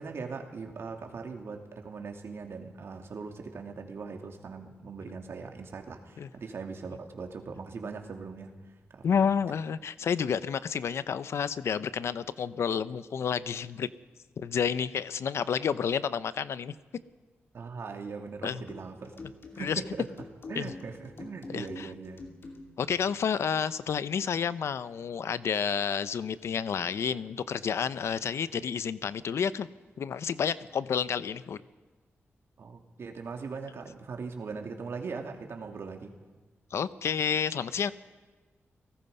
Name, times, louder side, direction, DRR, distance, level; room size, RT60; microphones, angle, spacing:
voice 1, 0.0-9.1 17.5-19.1 19.5-20.0 20.5-22.2 32.6-36.1, right 4 dB, 65° right, 3 dB, 2.8 m, -40 dB
voice 2, 9.0-13.9 14.4-16.7 18.4-18.6 19.6-19.8 20.6-20.7 21.5-21.9 22.8-29.7 30.0-31.6 36.7-37.9, left 7 dB, 80° left, 15 dB, 0.7 m, -30 dB
sound 1, 18.7-22.9, left 2 dB, 55° left, 2.7 m, -46 dB
29.5 x 18.5 x 5.5 m, 1.3 s
wide cardioid pair, 100°, 5 cm